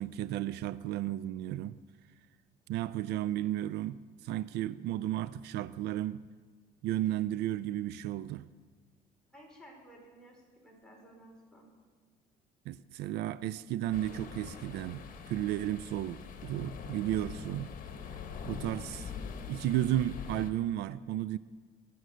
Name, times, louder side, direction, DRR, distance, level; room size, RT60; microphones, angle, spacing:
voice 1, 0.0-1.8 2.7-6.2 6.8-8.5 12.7-17.7 18.4-19.1 19.5-21.4, right 13 dB, 80° right, 0.4 m, -33 dB
voice 2, 9.3-11.7, right 1 dB, 5° left, 4.5 m, -55 dB
sound 1, 13.9-20.5, left 6 dB, 55° left, 1.3 m, -43 dB
19.5 x 7.9 x 6.4 m
cardioid pair, 110°, 17 cm